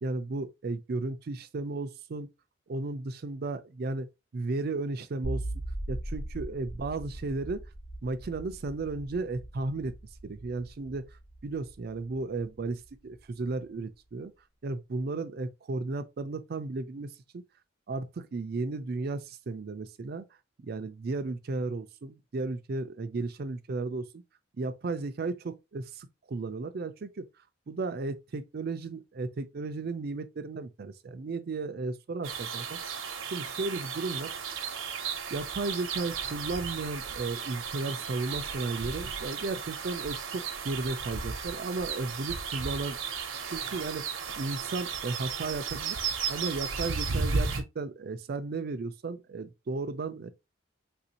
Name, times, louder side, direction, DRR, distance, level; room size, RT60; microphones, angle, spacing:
voice 1, 0.0-2.3 2.7-4.1 4.3-5.4 5.9-7.6 8.0-9.9 10.2-11.0 11.4-14.3 14.6-17.4 17.9-20.2 20.6-24.2 24.6-27.2 27.7-33.0 33.2-34.3 35.3-43.0 43.4-44.0 44.4-46.0 46.3-50.3, right 3 dB, 50° right, 0.4 m, -34 dB
sound 1, 5.2-12.4, right 1 dB, 50° left, 1.1 m, -39 dB
sound 2, 32.2-47.6, right 5 dB, 90° right, 0.7 m, -34 dB
3.6 x 2.6 x 2.7 m
head